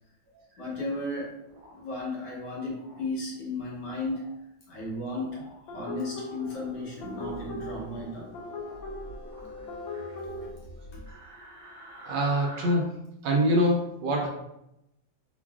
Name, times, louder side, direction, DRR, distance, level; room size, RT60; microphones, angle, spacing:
voice 1, 0.6-1.4 1.7-4.3 4.7-5.4 5.7-8.3 10.9-11.0, left 2 dB, 70° left, -4 dB, 1.4 m, -34 dB
sound 1, 1.4-2.0 2.7-3.0 3.8-4.3 5.2-5.6 6.1-6.7 7.0-7.4 8.4-8.8 9.2-10.2 11.1-12.7, equal, 50° right, 0.8 m, -49 dB
sound 2, 5.7-10.5, left 3 dB, 85° left, 1.4 m, -40 dB
sound 3, 6.5-11.2, left 1 dB, 55° left, 1.2 m, -45 dB
voice 2, 12.0-13.0 13.2-14.3, equal, 75° right, 0 dB, 1.1 m, -24 dB
3.2 x 2.3 x 2.3 m, 0.83 s
omnidirectional pair, 2.1 m